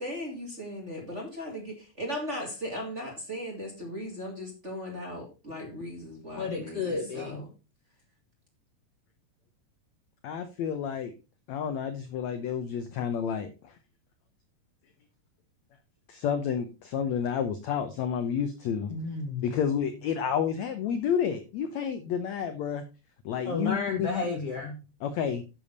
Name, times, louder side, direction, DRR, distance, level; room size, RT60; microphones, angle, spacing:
voice 1, 0.0-7.5, equal, 25° right, -1 dB, 1.9 m, -37 dB
voice 2, 6.3-7.4 18.9-19.6 23.4-24.8, left 4 dB, 60° left, 2 dB, 1.7 m, -32 dB
voice 3, 10.2-11.1 11.5-13.8 16.1-18.9 19.4-22.8 23.2-24.3 25.0-25.4, left 7 dB, 75° left, 8 dB, 1.7 m, -30 dB
10.5 x 6.9 x 4.0 m, 0.30 s
omnidirectional pair, 4.1 m